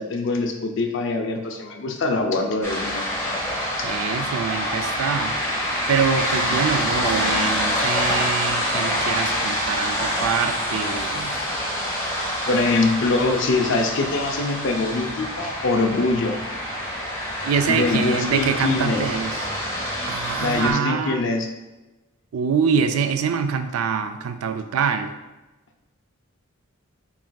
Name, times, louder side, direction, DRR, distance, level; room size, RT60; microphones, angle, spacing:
voice 1, 0.0-3.0 3.8-3.9 12.5-16.4 17.7-19.1 20.4-21.5, left 3 dB, 60° left, 4 dB, 0.5 m, -23 dB
sound 1, 2.6-20.7, equal, 15° left, 1.1 m, -26 dB
voice 2, 3.8-5.4 5.9-11.4 17.4-19.4 20.1-21.2 22.3-25.1, right 6 dB, 85° right, 9 dB, 0.4 m, -25 dB
7.2 x 2.6 x 2.2 m, 1.1 s
head